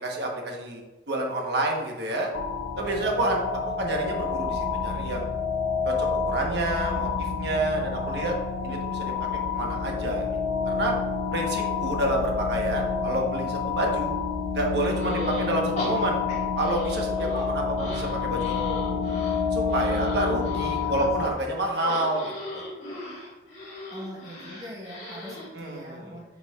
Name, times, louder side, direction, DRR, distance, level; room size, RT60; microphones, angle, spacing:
voice 1, 0.0-2.3 2.8-5.3 5.8-8.3 8.6-9.1 9.5-10.3 10.6-10.9 11.3-14.1 14.5-16.2 16.6-18.5 19.5-22.7 25.3-26.2, right 1 dB, 60° right, 0 dB, 1.1 m, -29 dB
sound 1, 2.3-21.3, left 5 dB, 80° left, 0.6 m, -29 dB
sound 2, 15.0-15.5 15.8-17.4 17.8-20.8 21.7-25.5, equal, 35° left, 1.7 m, -36 dB
voice 2, 20.4-21.3 23.9-26.2, equal, 20° right, -4 dB, 1.2 m, -42 dB
8.1 x 4.9 x 2.4 m, 1.2 s
head